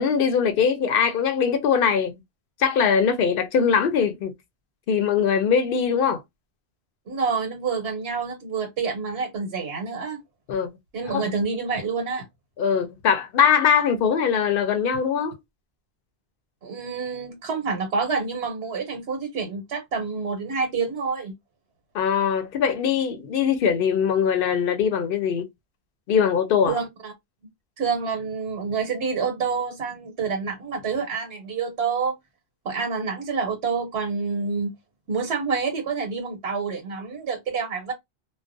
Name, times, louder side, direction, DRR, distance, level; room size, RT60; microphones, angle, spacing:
voice 1, 0.0-2.2 2.6-4.3 4.9-6.2 10.5-10.7 11.1-11.3 12.6-15.4 21.9-25.5 26.1-26.7, left 7 dB, 65° left, 0.7 m, -21 dB
voice 2, 7.1-10.2 10.9-12.3 16.6-21.3 26.7-27.1 27.8-32.1 32.6-34.7 35.1-37.9, right 5 dB, 90° right, 1.0 m, -28 dB
2.3 x 2.1 x 2.5 m
omnidirectional pair, 1.1 m